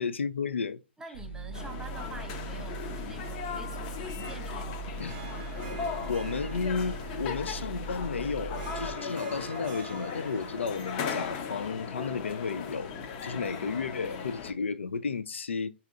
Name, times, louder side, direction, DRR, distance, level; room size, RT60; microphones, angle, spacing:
voice 1, 0.0-0.8 5.0-5.2 6.1-12.9 13.2-15.7, left 5 dB, 85° left, 0.3 m, -33 dB
voice 2, 1.0-5.3 13.4-14.3, right 4 dB, 10° right, 0.5 m, -47 dB
sound 1, 1.1-8.9, right 3 dB, 60° left, 1.6 m, -40 dB
sound 2, 1.5-14.5, left 6 dB, 35° left, 0.6 m, -38 dB
Harp, 4.9-13.5, right 6 dB, 40° right, 0.7 m, -47 dB
4.8 x 2.8 x 2.4 m
hypercardioid pair, 130°, 6 cm